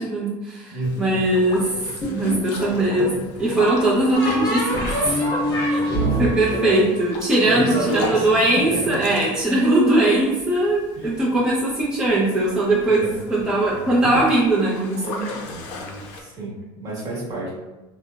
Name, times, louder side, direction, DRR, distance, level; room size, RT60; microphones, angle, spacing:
voice 1, 0.0-1.7 2.1-5.2 5.7-5.8 6.2-15.4, right 1 dB, 5° right, -8 dB, 0.4 m, -20 dB
voice 2, 0.7-1.2 5.9-6.9 7.4-8.3 8.5-8.8 10.9-11.2 12.9-13.2 16.1-17.5, right 1 dB, 35° right, -5 dB, 1.1 m, -28 dB
Boat Water vehicle, 0.8-16.2, left 2 dB, 70° left, 0.5 m, -35 dB
sound 1, 2.0-2.9 4.1-7.8, equal, 35° left, 0.9 m, -25 dB
3.0 x 2.0 x 2.2 m, 1.1 s
cardioid pair, 140°, 11 cm